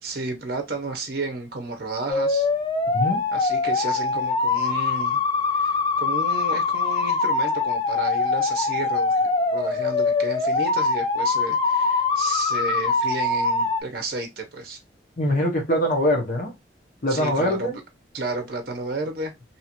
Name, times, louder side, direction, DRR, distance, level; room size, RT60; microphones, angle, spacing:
voice 1, 0.0-2.5 3.3-5.2 5.5-14.8 17.1-17.7 18.1-19.3, right 2 dB, 55° right, 0.7 m, -32 dB
sound 1, 2.1-13.8, left 4 dB, 25° left, 0.4 m, -23 dB
voice 2, 15.2-16.5 17.0-17.8, equal, 45° left, 0.8 m, -23 dB
2.8 x 2.4 x 2.8 m
head